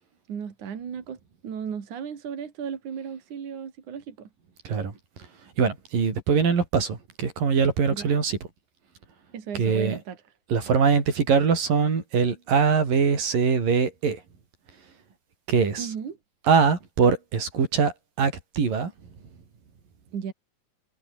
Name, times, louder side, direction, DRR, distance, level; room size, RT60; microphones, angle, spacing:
voice 1, 0.3-4.3 7.9-8.2 9.3-10.2 15.8-16.2 20.1-20.3, right 7 dB, 65° right, 4.2 m, -35 dB
voice 2, 5.6-8.4 9.5-10.0 10.5-14.2 15.5-15.9 16.4-18.9, right 6 dB, 85° right, 6.1 m, -22 dB
omnidirectional pair, 3.8 m